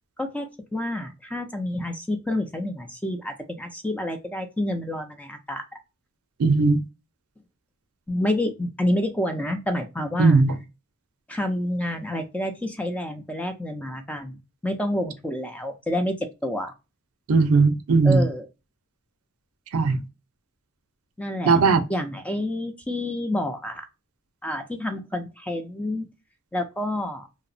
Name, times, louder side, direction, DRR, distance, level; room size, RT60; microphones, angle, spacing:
voice 1, 0.2-5.6 8.1-10.4 11.3-16.7 18.0-18.5 21.2-21.6 21.9-23.8 24.4-26.1 26.5-27.3, left 1 dB, 5° left, 0.4 m, -28 dB
voice 2, 6.4-6.8 10.2-10.5 17.3-18.2 19.7-20.0 21.5-21.8, right 4 dB, 80° right, 0.5 m, -18 dB
2.7 x 2.0 x 2.5 m
head